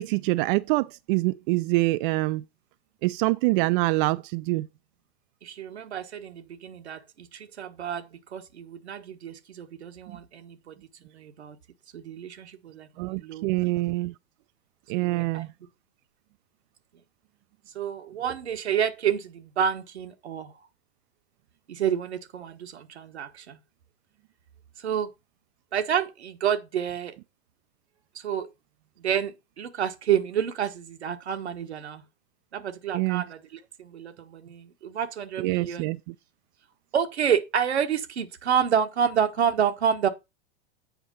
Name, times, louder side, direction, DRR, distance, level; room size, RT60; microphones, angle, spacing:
voice 1, 0.0-2.4 3.0-4.7 10.1-10.2 13.0-14.1 14.9-15.5 32.9-33.2 35.4-36.0, right 21 dB, 50° right, 0.5 m, -25 dB
voice 2, 5.4-10.7 11.1-11.6 11.9-13.7 14.9-15.4 17.7-20.5 21.7-23.6 24.8-25.1 25.7-27.2 28.1-28.5 29.0-32.0 32.5-35.9 36.9-40.1, right 8 dB, 90° right, 1.3 m, -29 dB
8.0 x 5.0 x 5.2 m
hypercardioid pair, 110°, 32 cm